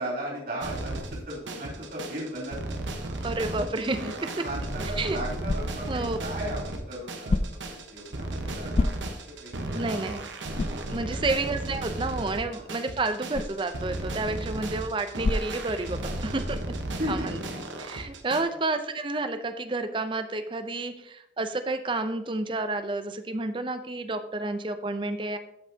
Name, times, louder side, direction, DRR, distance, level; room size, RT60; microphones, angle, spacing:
voice 1, 0.0-2.7 3.4-3.7 4.4-8.9 9.3-9.8 11.1-11.2 12.5-12.6 16.3-16.4 17.0-17.3 18.5-18.6, equal, 50° right, -4 dB, 3.4 m, -36 dB
sound 1, 0.6-18.4, right 1 dB, 85° right, 1.1 m, -35 dB
voice 2, 3.0-4.0 5.0-5.2 5.9-6.2 9.7-10.3 10.9-16.6 17.1-17.2 17.8-25.4, right 2 dB, 25° right, 9 dB, 0.5 m, -30 dB
sound 2, 4.6-16.3, left 2 dB, 30° left, 0.3 m, -34 dB
13.5 x 5.4 x 2.8 m, 0.82 s
head